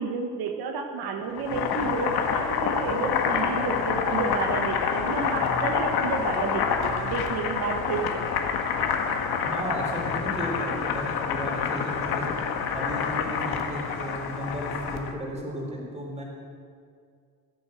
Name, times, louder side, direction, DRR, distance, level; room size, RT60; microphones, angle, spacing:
voice 1, 0.0-8.2, right 5 dB, 80° right, 4 dB, 1.4 m, -31 dB
Boiling, 1.3-15.1, left 6 dB, 80° left, 1.7 m, -27 dB
voice 2, 9.4-12.4 12.7-16.2, equal, 15° right, -1 dB, 3.7 m, -34 dB
15.5 x 11.0 x 7.6 m, 2.2 s
cardioid pair, 165°, 37 cm